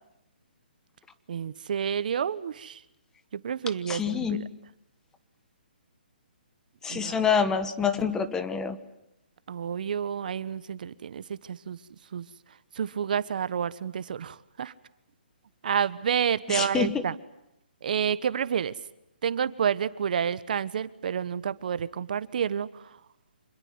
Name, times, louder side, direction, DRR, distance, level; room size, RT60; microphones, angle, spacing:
voice 1, 1.3-2.8 3.3-4.4 6.9-7.3 9.5-11.8 12.1-12.3 12.7-14.7 15.6-17.1 17.8-18.7 19.2-23.0, right 8 dB, 55° right, 16 dB, 1.1 m, -29 dB
voice 2, 3.9-4.5 6.8-8.8 16.5-17.0, left 6 dB, 10° left, 11 dB, 1.2 m, -27 dB
26.0 x 21.0 x 9.7 m, 0.85 s
hypercardioid pair, 155°, 5 cm